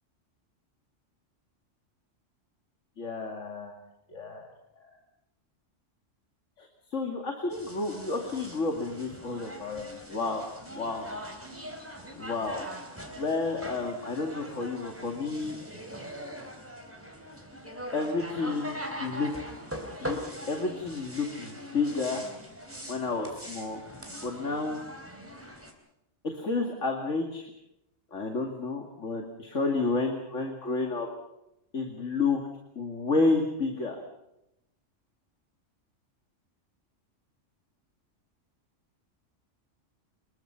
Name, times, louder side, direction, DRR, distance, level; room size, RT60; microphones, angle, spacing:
voice 1, 3.0-3.8 4.1-4.5 4.8-4.9 6.6-10.5 10.8-11.1 12.1-12.7 13.2-15.6 17.9-19.3 20.0-20.2 20.5-22.3 22.9-23.8 24.2-24.8 26.3-27.5 28.1-31.1 31.7-32.4 32.8-34.0, left 3 dB, 70° left, 3 dB, 2.7 m, -30 dB
sound 1, 7.5-25.7, equal, 10° right, 3.6 m, -42 dB
26.5 x 21.5 x 5.8 m, 0.84 s
omnidirectional pair, 1.3 m